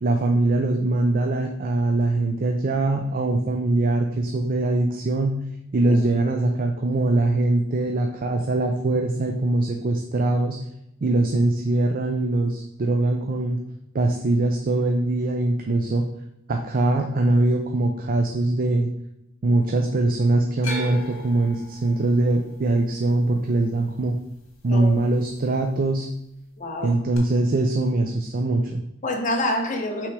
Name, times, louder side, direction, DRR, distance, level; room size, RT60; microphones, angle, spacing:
voice 1, 0.0-5.4 5.7-10.6 11.0-13.6 13.9-16.1 16.5-18.9 19.4-24.2 24.6-26.1 26.8-28.8, right 2 dB, 45° right, 3 dB, 0.5 m, -22 dB
sound 1, 20.6-24.8 25.1-25.8 27.1-27.2, equal, 70° left, 1.9 m, -38 dB
voice 2, 26.6-27.0 29.0-30.1, left 1 dB, 40° left, 3 dB, 0.9 m, -27 dB
5.8 x 3.5 x 4.9 m, 0.82 s
head